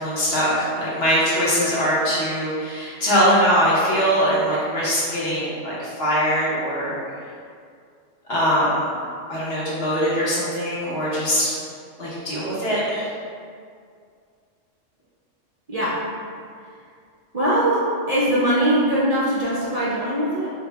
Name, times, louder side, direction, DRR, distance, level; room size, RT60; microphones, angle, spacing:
voice 1, 0.0-7.0 8.3-8.8 9.3-11.5 12.0-13.1, equal, 55° left, -8 dB, 1.0 m, -22 dB
voice 2, 15.7-16.0 17.3-20.5, right 1 dB, 55° right, -8 dB, 0.4 m, -21 dB
3.9 x 2.1 x 3.3 m, 2.2 s
omnidirectional pair, 1.3 m